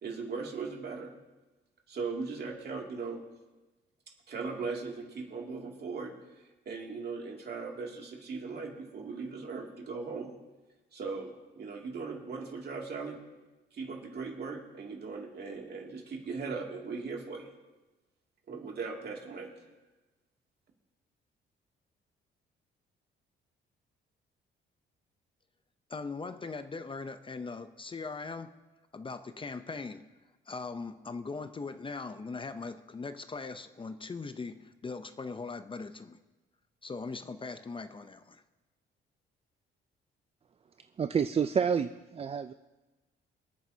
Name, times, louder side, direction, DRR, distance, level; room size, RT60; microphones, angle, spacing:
voice 1, 0.0-1.1 1.9-3.2 4.3-6.1 6.7-10.3 10.9-13.2 13.7-17.5 18.5-19.5, right 4 dB, 55° right, 0 dB, 2.5 m, -38 dB
voice 2, 25.9-28.5 28.9-30.0 30.5-36.2 36.8-38.4, left 4 dB, 25° left, 10 dB, 0.6 m, -40 dB
voice 3, 41.0-42.5, right 7 dB, 30° right, 10 dB, 0.4 m, -29 dB
25.5 x 9.3 x 2.8 m, 1.1 s
cardioid pair, 90°, 20 cm